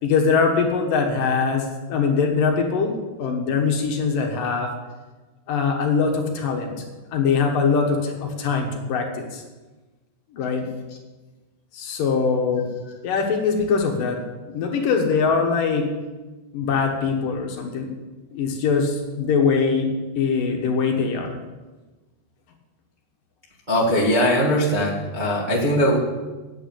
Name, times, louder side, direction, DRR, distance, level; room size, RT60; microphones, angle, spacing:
voice 1, 0.0-2.9 3.2-4.7 5.5-6.8 7.1-9.4 10.3-10.7 11.7-12.6 13.0-14.2 14.5-15.9 16.5-17.9 18.3-21.3, left 5 dB, 65° left, 2 dB, 2.6 m, -22 dB
voice 2, 23.7-26.0, equal, 40° right, -5 dB, 0.6 m, -20 dB
9.1 x 8.8 x 8.3 m, 1.2 s
omnidirectional pair, 4.6 m